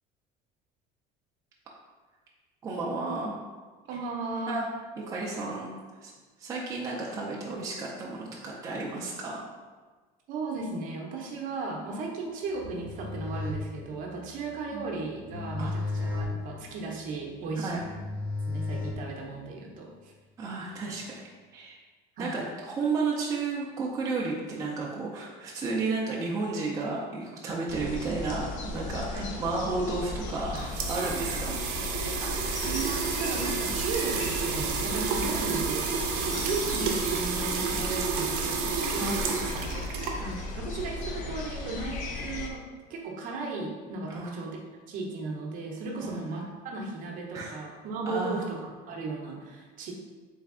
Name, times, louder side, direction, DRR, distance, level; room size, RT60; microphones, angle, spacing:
voice 1, 2.6-3.3 4.5-4.7 5.0-6.1 6.4-9.4 14.7-14.9 15.6-15.7 17.6-17.8 20.4-21.2 21.5-21.8 22.2-31.5 36.2-36.5 38.9-40.0 44.1-44.4 46.0-46.3 47.3-47.6 48.0-48.4, right 3 dB, 20° right, -4 dB, 0.5 m, -33 dB
voice 2, 3.9-4.5 10.3-17.8 18.5-20.1 22.2-22.4 29.1-29.3 31.0-31.2 31.4-31.5 32.2-32.3 32.6-35.9 36.4-39.2 40.2-44.6 44.9-49.9, right 3 dB, 50° right, 0 dB, 0.7 m, -36 dB
sound 1, 12.5-19.5, left 3 dB, 5° left, 0.7 m, -35 dB
sound 2, 27.7-42.5, left 2 dB, 45° left, 0.5 m, -36 dB
sound 3, 30.3-40.6, right 5 dB, 85° right, 0.6 m, -31 dB
3.3 x 3.1 x 3.6 m, 1.4 s
cardioid pair, 155°, 18 cm